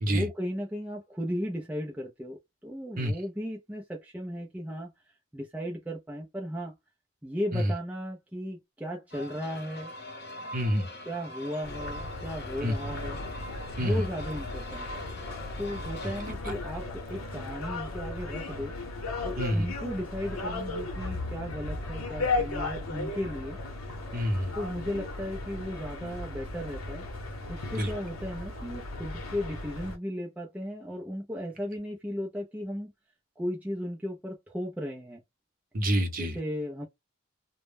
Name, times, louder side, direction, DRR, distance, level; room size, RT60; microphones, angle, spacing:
voice 1, 0.1-4.9 5.3-6.7 7.2-9.9 11.1-13.2 13.8-15.0 15.6-18.7 19.2-23.6 24.5-27.0 27.5-32.9 33.4-35.2 36.2-36.9, equal, 5° right, 0.4 m, -36 dB
sound 1, 9.1-16.3, left 1 dB, 50° left, 0.8 m, -42 dB
voice 2, 10.5-10.9 12.6-12.7 13.8-14.0 19.4-19.7 24.1-24.5 27.7-27.9 35.7-36.4, equal, 40° right, 0.7 m, -27 dB
sound 2, 11.6-30.0, left 2 dB, 85° left, 0.8 m, -36 dB
2.1 x 2.0 x 3.2 m
head